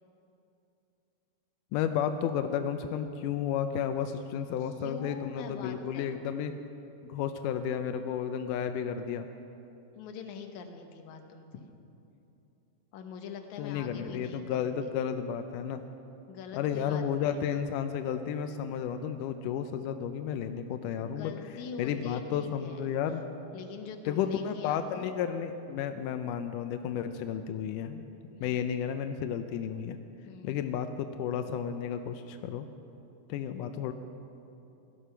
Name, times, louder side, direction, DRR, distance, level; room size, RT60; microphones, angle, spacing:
voice 1, 1.7-6.5 7.0-9.3 13.6-15.8 16.6-21.3 21.8-23.2 24.1-28.1 28.4-30.0 30.4-32.7 33.3-33.9, left 8 dB, 90° left, 8 dB, 1.8 m, -32 dB
voice 2, 4.6-6.2 10.0-11.7 12.9-14.9 16.3-17.6 21.1-22.9 23.5-25.1 28.4-28.6 30.2-30.6, left 6 dB, 65° left, 4 dB, 2.0 m, -44 dB
17.0 x 13.0 x 5.7 m, 2.8 s
omnidirectional pair, 4.4 m